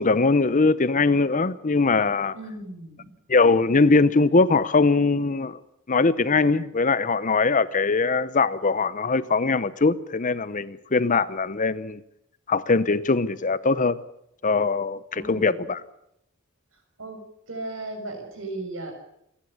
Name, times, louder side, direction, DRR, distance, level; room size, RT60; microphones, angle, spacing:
voice 1, 0.0-2.3 3.3-5.6 5.9-12.0 12.5-14.0 14.4-15.8, left 3 dB, 40° left, 0.8 m, -21 dB
voice 2, 2.3-3.1 15.1-15.7 16.7-17.2 17.5-18.9, right 2 dB, 65° right, 6.6 m, -36 dB
28.0 x 11.5 x 9.8 m
head